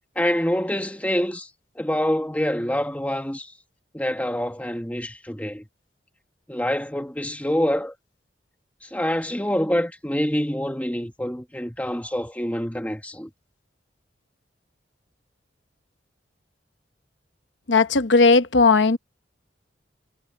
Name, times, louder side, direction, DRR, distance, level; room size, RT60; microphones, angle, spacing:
voice 1, 0.1-1.5 1.8-3.5 3.9-5.6 6.5-7.9 8.8-13.3, equal, 10° left, 1.4 m, -26 dB
voice 2, 17.7-19.0, left 4 dB, 75° left, 1.0 m, -17 dB
head